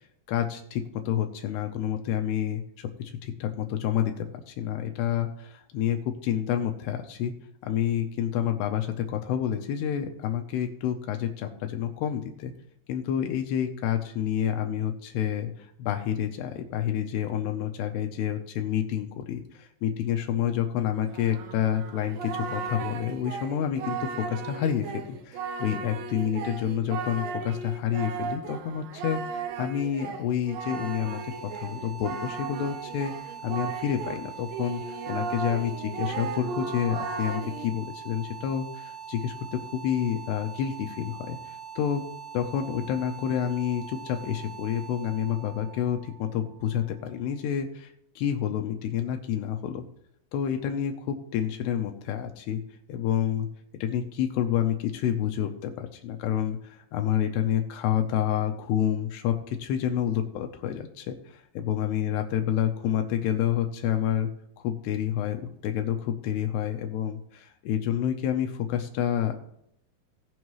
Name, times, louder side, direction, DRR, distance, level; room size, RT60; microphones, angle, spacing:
voice 1, 0.3-2.9 3.2-7.3 7.6-12.5 12.9-33.1 33.4-42.0 42.3-47.9 48.2-49.9 50.3-52.6 52.9-53.5 53.8-64.3 64.6-69.3, left 10 dB, 85° left, 5 dB, 2.9 m, -29 dB
Singing, 21.1-34.2 34.5-37.7, right 5 dB, 75° right, 2.2 m, -36 dB
sound 1, 30.4-47.4, right 7 dB, 55° right, 4.8 m, -43 dB
18.5 x 6.4 x 3.2 m, 0.75 s
omnidirectional pair, 4.7 m